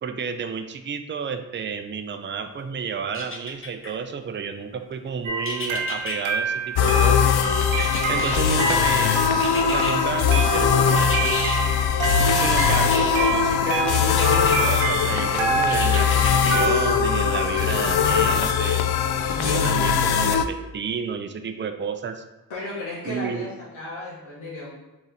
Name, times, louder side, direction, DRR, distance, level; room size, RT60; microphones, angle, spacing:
voice 1, 0.0-7.3 8.1-9.2 9.6-11.2 12.3-18.8 19.4-22.2 23.0-23.5, right 6 dB, 25° right, 7 dB, 0.5 m, -31 dB
sound 1, 3.1-3.9 5.4-6.2 7.7-8.7 9.4-9.9 11.0-11.6 12.3-13.2 14.1-14.5 15.7-16.5 17.0-17.1, left 2 dB, 25° left, 1.0 m, -32 dB
sound 2, 5.2-16.9, right 4 dB, 80° right, 0.8 m, -28 dB
sound 3, 6.8-20.4, left 7 dB, 55° left, 0.5 m, -21 dB
voice 2, 19.3-20.0 22.5-24.7, left 2 dB, 75° left, -7 dB, 1.4 m, -33 dB
4.1 x 3.1 x 3.9 m, 1.0 s
supercardioid pair, 45°, 48 cm